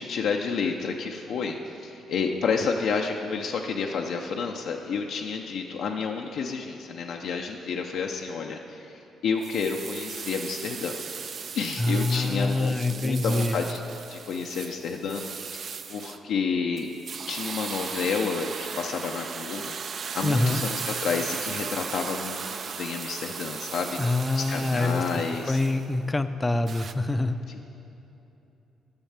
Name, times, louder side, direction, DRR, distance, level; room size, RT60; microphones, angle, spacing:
voice 1, 0.0-13.8 14.1-16.9 17.3-25.6 27.5-27.7, left 5 dB, 75° left, 1 dB, 0.5 m, -30 dB
sound 1, 9.4-16.2 16.8-25.8 26.7-26.9, right 6 dB, 50° right, 0.4 m, -37 dB
voice 2, 11.8-13.6 20.2-20.6 24.0-25.0 25.5-27.4, left 2 dB, 20° left, 10 dB, 0.4 m, -25 dB
8.7 x 6.3 x 7.3 m, 3.0 s
cardioid pair, 90°, 0 cm